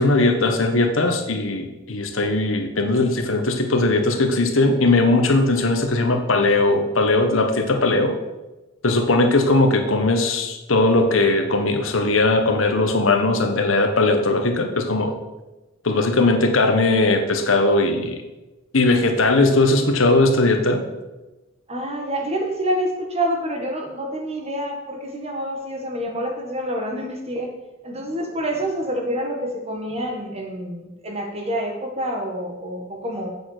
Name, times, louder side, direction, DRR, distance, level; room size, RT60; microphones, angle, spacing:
voice 1, 0.0-8.2 8.8-15.1 15.8-18.2 18.7-20.8, left 2 dB, 80° left, 5 dB, 1.4 m, -19 dB
voice 2, 21.7-27.5 27.8-33.3, right 1 dB, 30° right, 2 dB, 1.8 m, -27 dB
8.2 x 7.0 x 6.7 m, 1.1 s
head